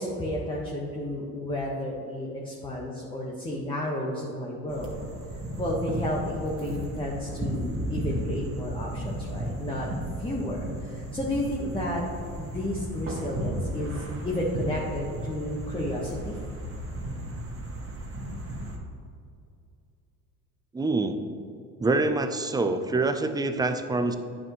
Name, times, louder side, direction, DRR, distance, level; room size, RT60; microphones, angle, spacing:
voice 1, 0.0-4.9 5.6-9.9 10.2-12.0 12.4-16.4, left 1 dB, 10° left, -4 dB, 1.3 m, -32 dB
sound 1, 4.7-18.8, right 1 dB, 30° right, 1.7 m, -34 dB
voice 2, 20.7-21.2 21.8-24.2, right 3 dB, 10° right, 8 dB, 0.5 m, -25 dB
9.9 x 6.2 x 3.1 m, 2.5 s
hypercardioid pair, 75°, 44 cm